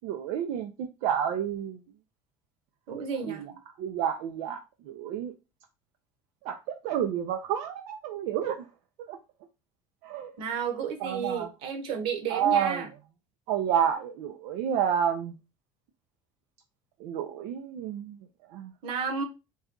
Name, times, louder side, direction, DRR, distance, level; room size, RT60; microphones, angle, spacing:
voice 1, 0.0-1.8 3.3-3.4 3.8-4.6 4.9-5.3 6.4-8.7 9.1-9.2 10.0-10.3 11.0-11.5 12.3-12.8 13.5-15.3 17.0-18.2 18.5-18.7, right 9 dB, 85° right, 0.5 m, -29 dB
voice 2, 2.9-3.4 10.4-12.9 18.8-19.2, right 6 dB, 65° right, 1.0 m, -32 dB
4.1 x 2.3 x 3.7 m
cardioid pair, 160°, 10 cm